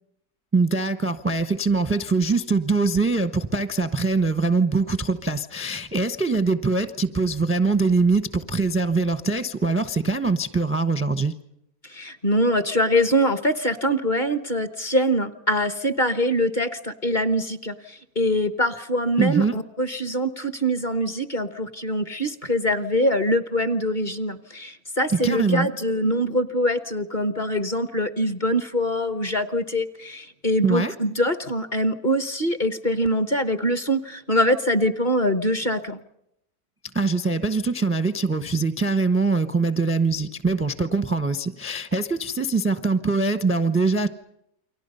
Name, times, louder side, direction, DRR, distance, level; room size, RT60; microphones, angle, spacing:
voice 1, 0.5-11.3 19.2-19.6 25.1-25.7 30.6-30.9 36.9-44.1, right 3 dB, 10° right, 11 dB, 0.6 m, -23 dB
voice 2, 11.8-36.0, equal, 35° left, 11 dB, 1.2 m, -24 dB
29.0 x 24.0 x 5.5 m, 0.79 s
omnidirectional pair, 1.7 m